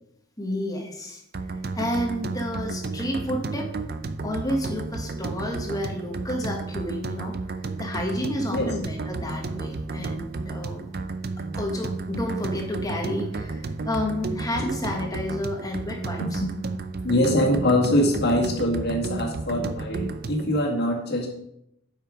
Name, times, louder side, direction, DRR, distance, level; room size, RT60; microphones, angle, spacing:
voice 1, 0.4-1.2 1.5-3.7 4.2-10.8 11.5-16.4, left 1 dB, 15° left, 1 dB, 1.5 m, -30 dB
sound 1, 1.3-20.5, right 3 dB, 45° right, 0.5 m, -32 dB
voice 2, 16.2-16.5 17.0-21.3, left 1 dB, 50° left, 0 dB, 1.9 m, -23 dB
8.3 x 5.7 x 5.0 m, 0.79 s
head